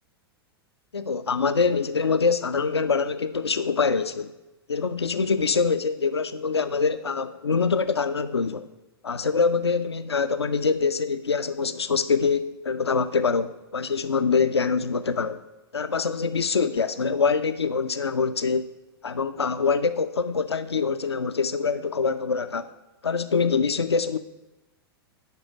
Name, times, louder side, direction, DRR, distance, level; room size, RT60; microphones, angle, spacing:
voice 1, 0.9-4.3 4.7-8.7 9.0-15.4 15.7-18.7 19.0-22.7 23.0-24.2, left 5 dB, 85° left, 11 dB, 0.4 m, -24 dB
8.0 x 5.3 x 5.1 m, 1.0 s
figure-of-eight pair, 100°, 13 cm